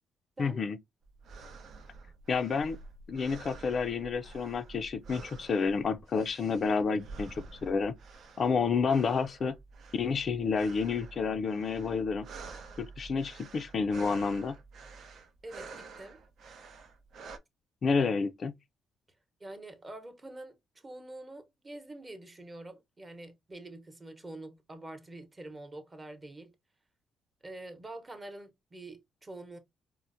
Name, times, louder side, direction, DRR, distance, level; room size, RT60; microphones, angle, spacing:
voice 1, 0.4-0.8 2.3-2.8 3.1-7.3 7.6-7.9 8.4-9.6 9.9-12.3 12.8-14.5 17.8-18.5, left 5 dB, 50° left, 0.4 m, -29 dB
sound 1, 1.0-17.4, right 4 dB, 70° right, 0.6 m, -49 dB
voice 2, 15.4-16.2 19.4-26.5 27.4-29.6, right 2 dB, 25° right, 0.9 m, -46 dB
4.3 x 2.0 x 2.5 m
cardioid pair, 90°, 0 cm